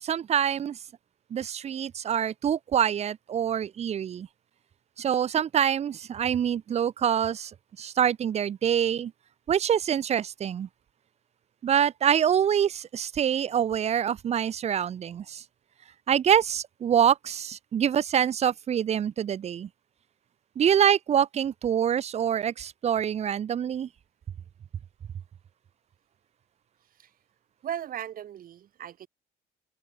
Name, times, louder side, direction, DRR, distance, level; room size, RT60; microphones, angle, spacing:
voice 1, 0.0-0.8 1.3-4.3 5.0-7.5 7.8-9.1 9.5-10.7 11.6-15.4 16.1-19.7 20.6-23.9, right 9 dB, 40° right, 0.7 m, -25 dB
voice 2, 27.6-29.1, right 10 dB, 55° right, 4.7 m, -37 dB
open air
cardioid pair, 110°, 17 cm